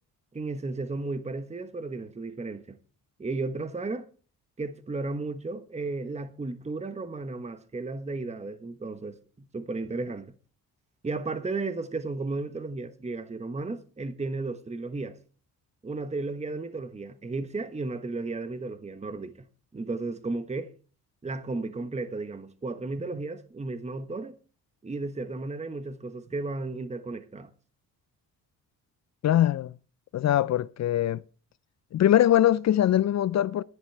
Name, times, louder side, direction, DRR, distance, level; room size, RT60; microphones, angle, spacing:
voice 1, 0.3-2.8 3.2-4.1 4.6-10.3 11.0-15.2 15.8-19.5 19.7-20.7 21.2-24.3 24.8-27.5, right 3 dB, 20° right, 1.1 m, -34 dB
voice 2, 29.2-29.7 30.1-31.2 31.9-33.6, left 12 dB, 50° left, 0.5 m, -22 dB
11.5 x 10.5 x 4.5 m
cardioid pair, 75°, 34 cm